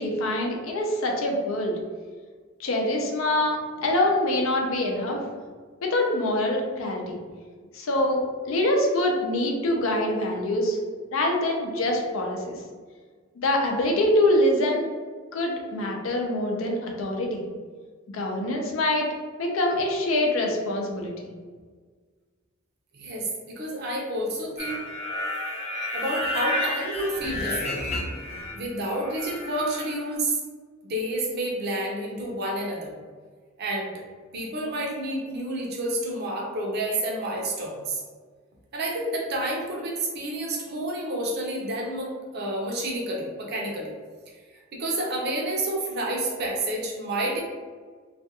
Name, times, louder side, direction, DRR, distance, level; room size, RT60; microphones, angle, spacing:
voice 1, 0.0-1.8 2.6-5.2 5.8-7.2 7.7-10.8 11.1-12.6 13.4-14.9 15.3-17.4 18.1-19.1 19.4-21.3, left 1 dB, 90° left, 0 dB, 0.5 m, -25 dB
voice 2, 22.9-24.8 25.9-27.8 28.5-30.4 30.8-32.9 33.6-34.0 34.3-38.0 38.7-43.9 44.3-47.4, right 1 dB, 55° right, -2 dB, 0.6 m, -29 dB
sound 1, 24.6-28.7 28.9-30.1, left 1 dB, 30° left, 0.5 m, -31 dB
2.4 x 2.2 x 2.8 m, 1.5 s
head